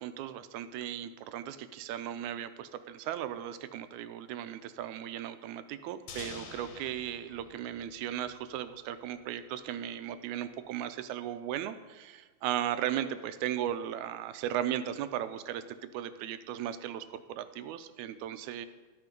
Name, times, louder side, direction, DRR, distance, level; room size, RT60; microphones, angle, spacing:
voice 1, 0.0-18.7, right 11 dB, 85° right, 12 dB, 2.0 m, -36 dB
sound 1, 6.1-8.9, left 5 dB, 85° left, 2.6 m, -48 dB
12.5 x 6.0 x 5.2 m, 1.3 s
omnidirectional pair, 3.3 m